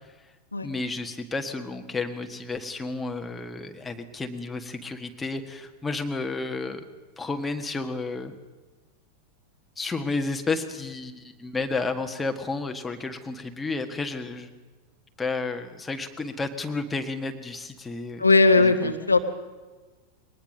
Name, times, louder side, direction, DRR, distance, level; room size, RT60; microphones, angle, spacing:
voice 1, 0.6-6.8 7.2-8.3 9.8-14.5 15.2-18.2 18.6-18.9, left 3 dB, 10° left, 5 dB, 1.6 m, -31 dB
voice 2, 18.2-19.2, left 3 dB, 80° left, 6 dB, 1.4 m, -18 dB
22.0 x 19.5 x 6.5 m, 1.3 s
figure-of-eight pair, 90°, 0 cm